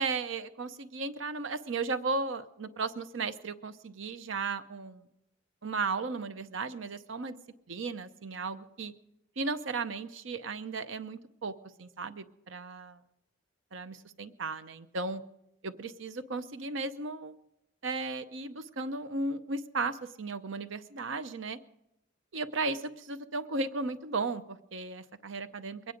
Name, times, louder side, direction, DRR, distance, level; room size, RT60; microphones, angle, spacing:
voice 1, 0.0-5.0 5.6-7.3 7.7-8.9 9.4-11.5 11.8-13.0 13.7-15.2 15.6-17.4 17.8-21.6 22.3-25.9, right 3 dB, 75° right, 11 dB, 0.7 m, -35 dB
22.5 x 9.2 x 5.1 m, 0.85 s
head